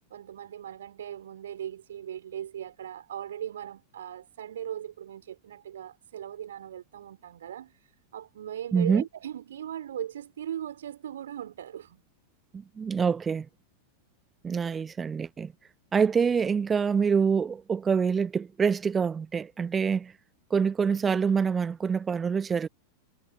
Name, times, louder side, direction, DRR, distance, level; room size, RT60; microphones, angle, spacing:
voice 1, 0.1-12.0, right 10 dB, 65° right, 4.6 m, -39 dB
voice 2, 8.7-9.0 12.5-13.5 14.4-15.5 15.9-20.1 20.5-22.7, right 6 dB, 20° right, 1.0 m, -26 dB
figure-of-eight pair, 90°, 0 cm